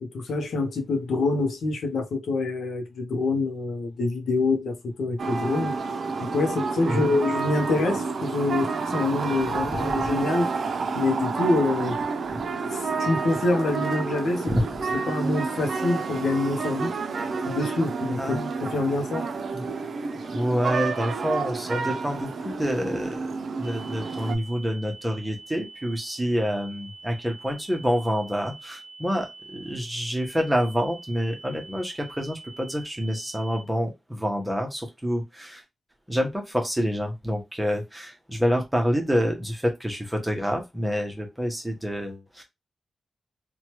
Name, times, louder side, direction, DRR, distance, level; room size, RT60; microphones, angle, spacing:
voice 1, 0.0-5.8 6.2-10.5 10.9-12.0 12.6-14.5 15.1-16.9 17.5-19.3, left 3 dB, 85° left, 0.6 m, -26 dB
sound 1, 5.2-24.3, right 4 dB, 60° right, 0.5 m, -29 dB
voice 2, 18.2-18.5 19.5-19.7 20.3-23.3 23.6-35.6 36.1-42.4, equal, 5° right, 0.8 m, -27 dB
sound 2, 23.6-33.6, right 3 dB, 15° left, 1.1 m, -45 dB
3.0 x 2.2 x 2.9 m
wide cardioid pair, 155°, 0 cm